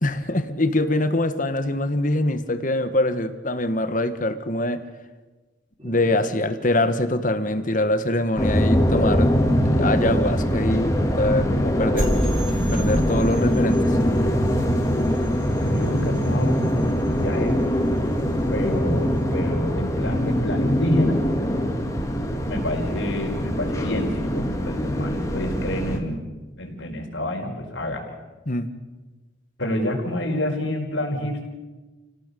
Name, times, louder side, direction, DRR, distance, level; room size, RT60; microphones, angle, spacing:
voice 1, 0.0-4.8 5.8-9.4 9.6-12.1 12.7-14.0 28.5-28.7, left 1 dB, 40° left, 9 dB, 1.6 m, -24 dB
sound 1, 5.8-8.9 12.0-19.3, equal, 25° right, 5.0 m, -32 dB
sound 2, 8.4-26.0, equal, 15° left, 2.4 m, -23 dB
voice 2, 15.6-16.6 17.2-17.6 18.5-21.2 22.5-26.2 26.6-28.1 29.6-31.5, left 1 dB, 70° left, 2 dB, 4.8 m, -27 dB
29.5 x 18.5 x 7.0 m, 1.2 s
head